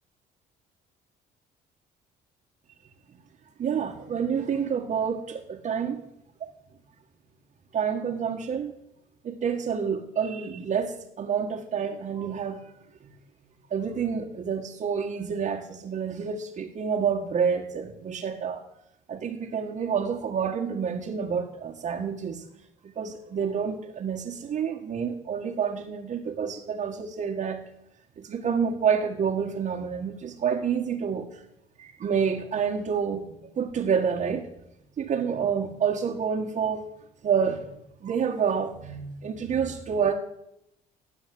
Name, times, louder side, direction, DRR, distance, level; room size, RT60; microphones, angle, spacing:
voice 1, 3.6-6.0 6.4-6.5 7.7-8.7 9.2-12.7 13.0-13.1 13.7-18.6 19.1-22.4 22.8-27.6 28.2-31.4 31.8-34.5 35.0-36.8 37.2-40.1, right 7 dB, 45° right, -2 dB, 1.8 m, -28 dB
16.0 x 9.2 x 7.9 m, 0.82 s
cardioid pair, 110°, 17 cm